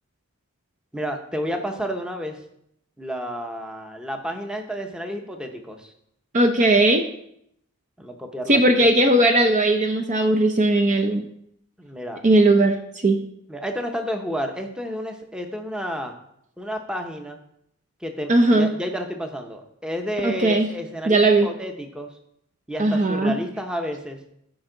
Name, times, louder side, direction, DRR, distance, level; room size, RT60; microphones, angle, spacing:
voice 1, 0.9-2.4 3.0-5.9 8.0-8.9 11.8-12.2 13.5-16.2 16.6-17.4 18.0-22.1 22.7-24.2, equal, 5° right, 4 dB, 0.8 m, -31 dB
voice 2, 6.3-7.0 8.5-11.3 12.2-12.8 13.0-13.2 18.3-18.7 20.2-20.7 21.1-21.5 22.8-23.3, right 2 dB, 35° right, 5 dB, 0.5 m, -18 dB
13.5 x 5.3 x 3.8 m, 0.75 s
head